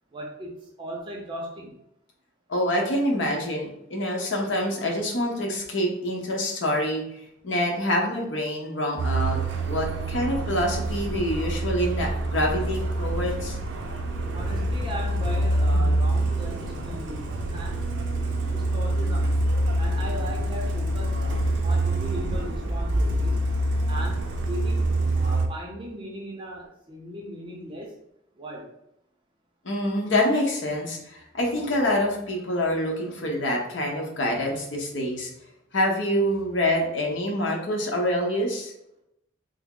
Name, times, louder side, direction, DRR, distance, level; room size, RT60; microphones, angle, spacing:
voice 1, 0.1-1.7 14.3-17.8 18.5-19.3 19.8-21.2 21.6-23.4 23.9-27.9 28.4-28.7, equal, 25° right, -1 dB, 0.5 m, -38 dB
voice 2, 2.5-7.0 7.4-9.4 9.7-13.6 29.6-35.3 35.7-38.7, left 1 dB, 80° left, 0 dB, 0.8 m, -26 dB
Truck, 9.0-25.5, right 1 dB, 75° right, 0.5 m, -26 dB
3.4 x 2.0 x 3.6 m, 0.81 s
head